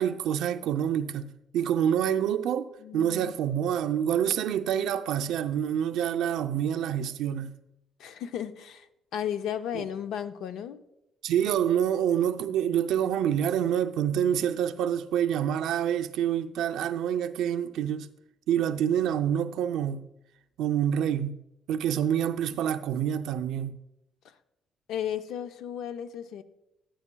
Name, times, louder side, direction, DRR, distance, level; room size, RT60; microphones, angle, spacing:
voice 1, 0.0-7.5 9.7-9.8 11.2-18.1 18.5-20.1 20.6-21.4 21.7-23.8, right 9 dB, 80° right, 0.5 m, -27 dB
voice 2, 2.8-3.4 8.0-10.8 24.2-24.3 24.9-26.4, left 9 dB, 80° left, 0.5 m, -34 dB
12.0 x 9.0 x 2.2 m
cardioid pair, 135°, 0 cm